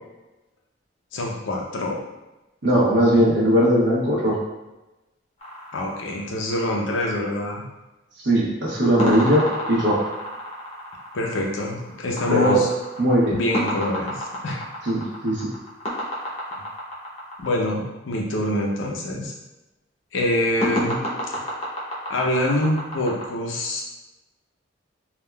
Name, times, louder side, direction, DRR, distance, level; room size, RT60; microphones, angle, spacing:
voice 1, 1.1-2.1 5.7-7.6 11.1-12.7 13.3-14.6 17.4-19.3 20.1-21.0 22.1-23.8, left 1 dB, 80° left, -1 dB, 0.6 m, -25 dB
voice 2, 2.6-4.4 8.2-10.0 12.3-12.6 13.0-13.4 14.8-15.5, equal, 70° right, -7 dB, 1.0 m, -19 dB
sound 1, 5.4-6.8 9.0-17.6 20.6-23.3, equal, 30° left, 0.6 m, -30 dB
3.5 x 2.3 x 2.2 m, 1.0 s
head